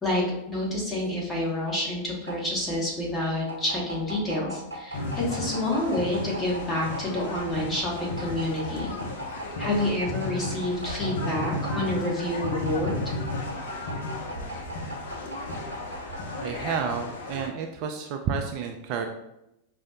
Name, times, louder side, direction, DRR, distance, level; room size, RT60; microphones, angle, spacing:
voice 1, 0.0-8.9 9.6-13.1, left 1 dB, 15° left, -3 dB, 1.1 m, -28 dB
sound 1, 1.5-17.5, right 1 dB, 80° right, 0.7 m, -39 dB
sound 2, 4.9-17.5, left 2 dB, 55° left, 0.5 m, -34 dB
voice 2, 16.4-19.1, right 6 dB, 40° right, 3 dB, 0.3 m, -30 dB
4.9 x 2.0 x 2.6 m, 0.85 s
figure-of-eight pair, 90°, 0 cm